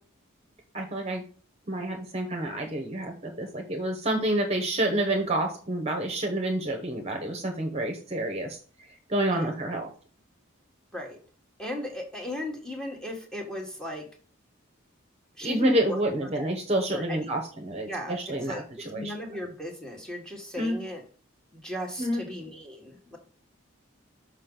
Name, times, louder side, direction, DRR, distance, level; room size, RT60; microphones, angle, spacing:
voice 1, 0.7-1.2 1.7-8.6 9.1-9.9 15.4-19.1 20.6-20.8 22.0-22.2, right 1 dB, 30° right, 3 dB, 1.0 m, -28 dB
voice 2, 11.6-14.1 15.4-16.0 16.3-16.5 16.9-17.3 17.9-18.6 18.9-21.0 21.5-23.2, left 1 dB, 5° left, -1 dB, 1.4 m, -36 dB
6.5 x 4.9 x 3.8 m, 0.41 s
head